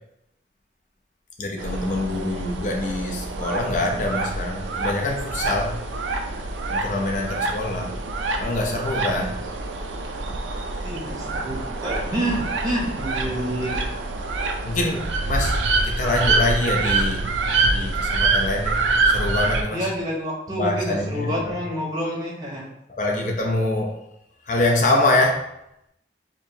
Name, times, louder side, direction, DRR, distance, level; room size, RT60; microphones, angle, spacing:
voice 1, 1.4-5.8 6.7-7.9 8.4-9.4 11.9-12.3 14.6-15.6 15.8-17.2 17.7-18.8 19.1-19.9 20.5-21.6 22.9-24.0 24.5-25.4, left 2 dB, 45° left, 1 dB, 0.6 m, -25 dB
sound 1, 1.6-19.6, right 3 dB, 80° right, 0.4 m, -26 dB
voice 2, 10.8-13.8 19.7-22.6, right 1 dB, 20° right, -3 dB, 0.8 m, -28 dB
4.6 x 2.7 x 2.7 m, 0.84 s
head